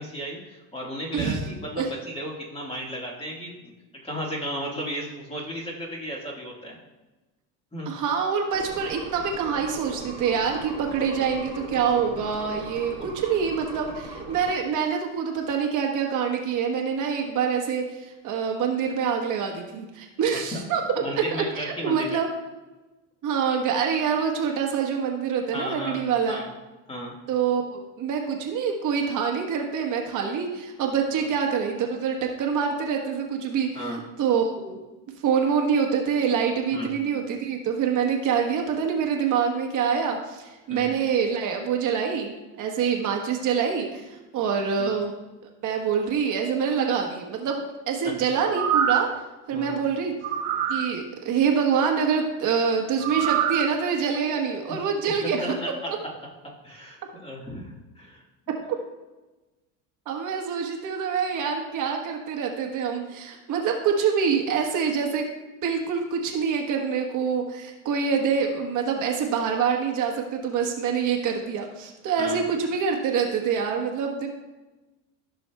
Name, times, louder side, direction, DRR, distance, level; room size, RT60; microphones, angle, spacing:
voice 1, 0.0-3.7 4.0-6.8 7.7-7.9 13.0-13.1 20.5-20.6 21.0-22.2 25.5-26.5 26.9-27.1 31.2-31.3 33.7-34.0 36.7-37.0 40.7-40.9 44.8-45.0 49.5-49.8 55.2-55.9 56.6-58.2 72.2-72.4, equal, 15° left, -2 dB, 1.7 m, -34 dB
voice 2, 1.1-1.4 1.8-1.9 7.9-20.8 21.1-22.3 23.2-26.4 27.3-34.8 35.2-45.1 45.6-47.6 47.9-49.1 49.5-50.1 50.7-55.6 60.1-65.2 65.6-74.3, right 6 dB, 50° right, 2 dB, 1.2 m, -26 dB
sound 1, 8.5-14.5, right 2 dB, 15° right, 1.4 m, -39 dB
sound 2, 48.4-49.2 50.2-50.9 53.0-53.7 54.2-54.3, right 9 dB, 70° right, 0.7 m, -25 dB
14.0 x 6.2 x 2.3 m, 1.1 s
cardioid pair, 135°, 40 cm